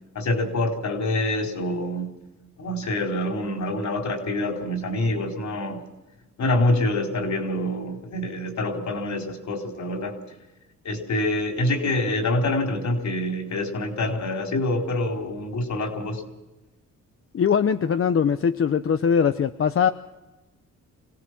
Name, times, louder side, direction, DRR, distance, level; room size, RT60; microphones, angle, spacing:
voice 1, 0.1-2.1 2.6-5.8 6.4-10.2 10.8-16.2, left 1 dB, 65° left, 3 dB, 4.2 m, -26 dB
voice 2, 17.3-19.9, left 7 dB, 45° left, 9 dB, 0.8 m, -21 dB
26.0 x 17.5 x 6.0 m, 1.1 s
cardioid pair, 100°, 30 cm